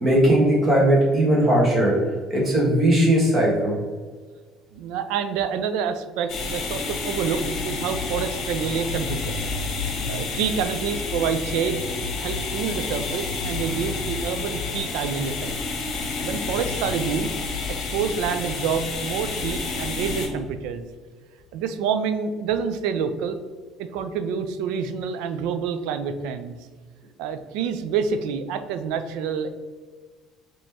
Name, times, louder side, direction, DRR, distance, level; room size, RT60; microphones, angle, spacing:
voice 1, 0.0-2.0 2.3-3.7, right 1 dB, 25° right, -3 dB, 1.5 m, -18 dB
voice 2, 4.7-9.4 10.1-11.9 12.2-15.5 16.2-17.3 17.7-20.8 21.5-23.4 23.8-26.6 27.2-29.5, right 6 dB, 90° right, 9 dB, 0.4 m, -27 dB
sound 1, 6.3-20.3, left 4 dB, 50° left, 1.0 m, -29 dB
5.1 x 3.0 x 3.5 m, 1.4 s
cardioid pair, 155°, 0 cm